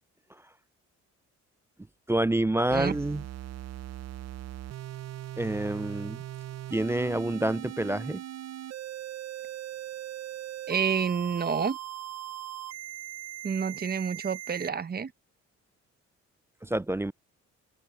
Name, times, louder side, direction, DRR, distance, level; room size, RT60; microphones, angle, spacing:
voice 1, 2.1-3.2 5.4-6.2 6.7-8.2 16.6-17.1, right 1 dB, 10° right, 0.4 m, -28 dB
sound 1, 2.7-14.7, right 13 dB, 60° right, 0.8 m, -40 dB
voice 2, 10.7-11.8 13.4-15.1, right 6 dB, 30° right, 0.9 m, -29 dB
open air
cardioid pair, 90°, 30 cm